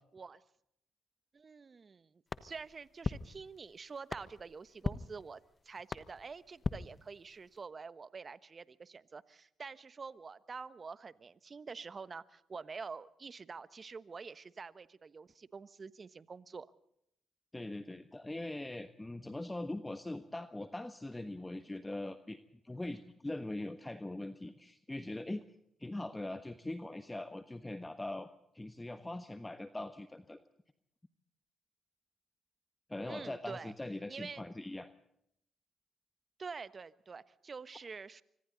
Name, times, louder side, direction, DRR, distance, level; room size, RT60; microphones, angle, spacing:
voice 1, 1.3-5.4 5.6-16.7 33.1-33.7 34.1-34.4 36.4-38.2, right 5 dB, 45° right, 15 dB, 1.2 m, -47 dB
sound 1, 2.3-7.6, left 4 dB, 40° left, 1.2 m, -42 dB
voice 2, 17.5-25.4 25.8-28.3 28.5-30.4 32.9-34.9, left 2 dB, 15° left, 9 dB, 1.3 m, -41 dB
26.0 x 25.0 x 4.0 m, 0.75 s
hypercardioid pair, 50°, 0 cm